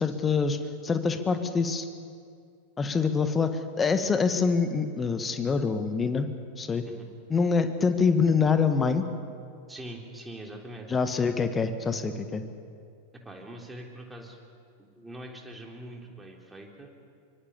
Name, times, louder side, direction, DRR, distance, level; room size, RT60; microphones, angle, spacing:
voice 1, 0.0-1.9 2.8-3.5 3.8-6.3 6.6-6.8 7.3-9.0 10.9-12.4, left 5 dB, 15° left, 9 dB, 1.8 m, -25 dB
voice 2, 9.7-10.9 13.1-14.4 14.8-16.9, right 1 dB, 10° right, 1 dB, 3.5 m, -43 dB
24.5 x 24.0 x 7.1 m, 2.3 s
figure-of-eight pair, 90°, 0 cm